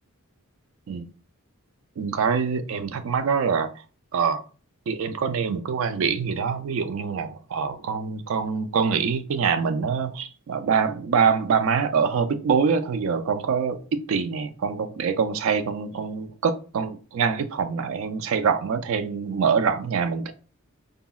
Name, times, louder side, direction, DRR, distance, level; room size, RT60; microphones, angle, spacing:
voice 1, 2.0-3.7 4.1-4.4 4.9-20.3, right 6 dB, 60° right, 0.3 m, -25 dB
3.8 x 2.0 x 2.2 m
head